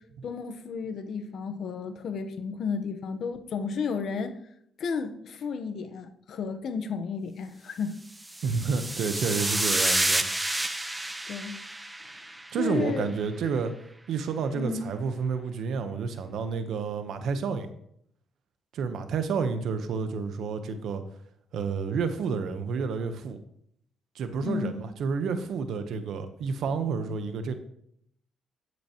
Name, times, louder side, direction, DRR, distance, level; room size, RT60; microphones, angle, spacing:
voice 1, 0.2-4.4 4.8-8.0 11.3-11.6 12.6-13.1 14.5-14.9 24.4-24.8, left 5 dB, 65° left, 7 dB, 1.1 m, -32 dB
sound 1, 8.2-12.7, right 1 dB, 10° right, 0.9 m, -29 dB
voice 2, 8.4-10.3 12.5-13.7 14.1-17.7 18.7-21.0 21.5-23.4 24.1-27.5, right 5 dB, 75° right, 9 dB, 1.0 m, -30 dB
10.5 x 8.5 x 3.0 m, 0.71 s
cardioid pair, 90°, 0 cm